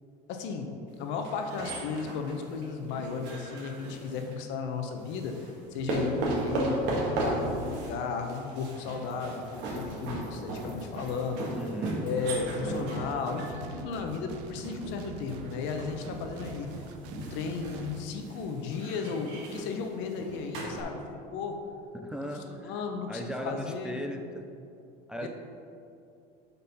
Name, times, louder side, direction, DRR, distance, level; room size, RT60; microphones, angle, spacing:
voice 1, 0.3-11.5 12.0-16.7 17.1-21.0 21.3-21.6 22.1-22.2 22.5-24.0 25.2-25.3, left 5 dB, 65° left, 5 dB, 1.0 m, -34 dB
sound 1, 1.2-4.3 5.1-20.8, right 2 dB, 60° right, 1.7 m, -36 dB
voice 2, 11.5-12.0 21.9-22.8 23.1-24.5 25.1-25.3, right 1 dB, 5° right, 4 dB, 0.3 m, -37 dB
sound 2, 12.6-18.1, right 7 dB, 80° right, 0.6 m, -45 dB
8.1 x 4.1 x 5.5 m, 2.6 s
supercardioid pair, 125°, 20 cm